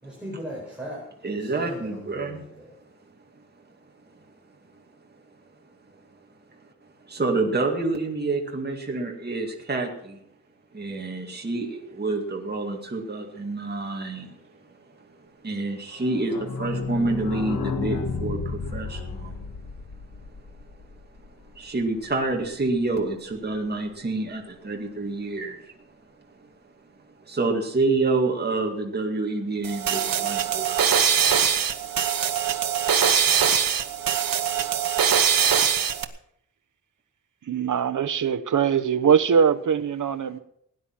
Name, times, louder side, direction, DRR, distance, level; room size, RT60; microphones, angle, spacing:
voice 1, 0.0-2.7, equal, 5° right, 5.1 m, -39 dB
voice 2, 1.2-2.4 7.0-10.2 10.7-14.4 15.4-19.5 21.6-25.7 27.3-30.9 32.4-32.5 32.8-32.9, right 3 dB, 30° right, 2.1 m, -28 dB
sound 1, 15.9-21.5 21.8-21.9 22.1-22.2 22.5-22.6, left 4 dB, 80° left, 1.6 m, -32 dB
sound 2, 29.6-36.0, right 8 dB, 80° right, 1.1 m, -22 dB
voice 3, 37.4-40.4, right 7 dB, 65° right, 0.9 m, -22 dB
17.5 x 10.0 x 5.9 m
wide cardioid pair, 150°, 34 cm